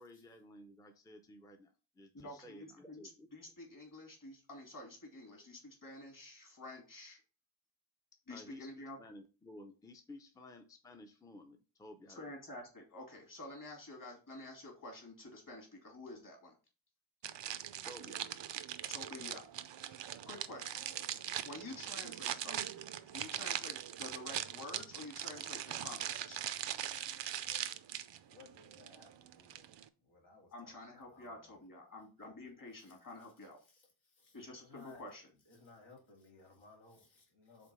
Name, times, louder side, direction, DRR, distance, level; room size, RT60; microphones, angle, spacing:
voice 1, 0.0-3.3 8.3-12.3 17.8-18.3, left 1 dB, 10° left, 0.6 m, -54 dB
voice 2, 2.1-7.2 8.3-9.0 12.1-16.5 18.9-19.5 19.8-20.0 20.2-20.8 21.4-22.6 23.1-26.4 30.5-33.6 34.3-35.3, left 2 dB, 45° left, 2.5 m, -49 dB
sound 1, 17.2-29.9, right 10 dB, 65° right, 0.6 m, -41 dB
voice 3, 28.3-29.7 30.0-31.5 32.2-32.3 34.2-35.0 35.5-37.7, left 3 dB, 75° left, 2.4 m, -60 dB
5.1 x 4.0 x 5.5 m
wide cardioid pair, 170°, 46 cm